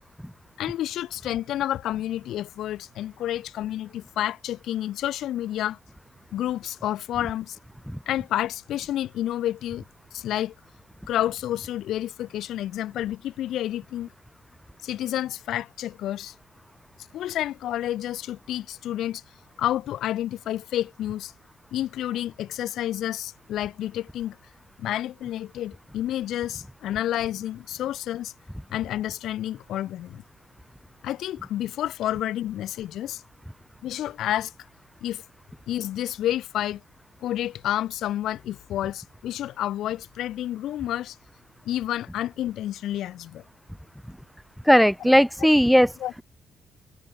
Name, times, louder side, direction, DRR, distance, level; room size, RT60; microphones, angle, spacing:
voice 1, 0.6-5.8 6.3-7.6 8.1-9.8 10.1-10.5 11.1-14.1 14.8-16.3 17.1-19.2 19.6-21.3 21.7-24.4 24.8-28.3 28.7-30.2 31.0-33.2 33.8-34.5 35.0-35.2 35.7-36.8 37.2-41.2 41.6-43.4 45.0-45.1 46.0-46.1, left 12 dB, 80° left, 0.5 m, -29 dB
voice 2, 44.7-45.9, equal, ahead, 0.5 m, -17 dB
cardioid pair, 90°, 0 cm